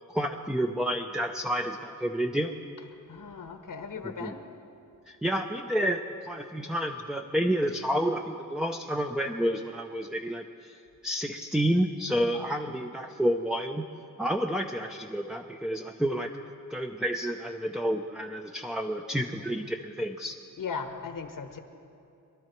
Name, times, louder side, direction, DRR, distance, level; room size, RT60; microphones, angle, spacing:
voice 1, 0.1-2.5 4.0-4.3 5.1-13.9 14.2-16.3 16.7-20.3, equal, ahead, 3 dB, 0.7 m, -30 dB
voice 2, 3.1-4.5 20.6-21.6, left 5 dB, 65° left, 7 dB, 1.3 m, -37 dB
23.0 x 12.0 x 4.6 m, 2.6 s
cardioid pair, 75°, 35 cm